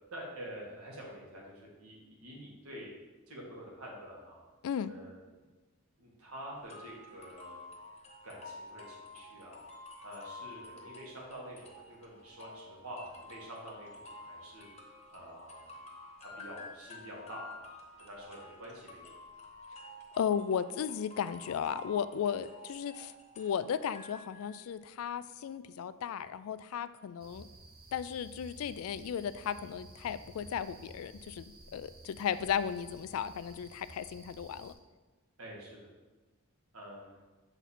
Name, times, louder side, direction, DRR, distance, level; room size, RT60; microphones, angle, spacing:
voice 1, 0.1-2.9 3.3-4.4 4.9-5.4 6.0-7.6 8.2-9.6 10.0-14.7 15.1-15.9 16.2-17.7 18.0-19.1 35.4-35.9 36.7-37.2, equal, 90° right, -3 dB, 1.8 m, -47 dB
sound 1, 6.7-24.6, left 2 dB, 30° left, 1.0 m, -50 dB
voice 2, 20.2-27.5 27.9-31.4 31.7-34.7, left 8 dB, 80° left, 14 dB, 0.3 m, -35 dB
sound 2, 27.2-34.7, right 2 dB, 45° right, 0.7 m, -54 dB
7.1 x 4.0 x 4.2 m, 1.2 s
head